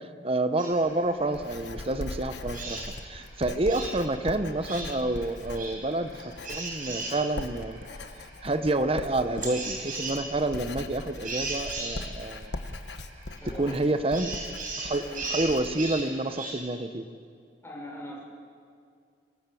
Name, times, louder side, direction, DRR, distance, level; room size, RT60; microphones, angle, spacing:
voice 1, 0.0-7.8 8.4-12.6 13.6-14.3 14.8-17.1, right 2 dB, 35° right, 10 dB, 1.1 m, -28 dB
sound 1, 0.6-16.5, right 3 dB, 50° right, 7.8 m, -39 dB
Writing, 0.7-16.1, left 2 dB, 85° left, 1.1 m, -41 dB
voice 2, 13.3-13.9 15.0-15.4 17.6-18.2, equal, 15° left, -3 dB, 5.7 m, -42 dB
24.0 x 19.0 x 7.8 m, 2.3 s
head